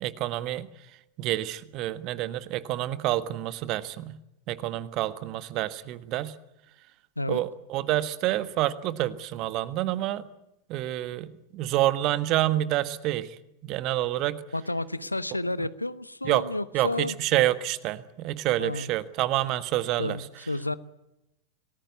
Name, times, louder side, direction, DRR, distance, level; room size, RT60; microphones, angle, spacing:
voice 1, 0.0-0.7 1.2-4.1 4.5-6.3 7.3-10.2 10.7-11.3 11.5-13.3 13.6-14.4 16.2-16.4 16.7-16.9 17.2-20.2, right 15 dB, 40° right, 14 dB, 1.5 m, -28 dB
voice 2, 14.5-17.2 18.6-18.9 20.0-20.8, left 2 dB, 85° left, 17 dB, 0.9 m, -31 dB
28.0 x 19.5 x 8.5 m, 0.93 s
figure-of-eight pair, 90°, 0 cm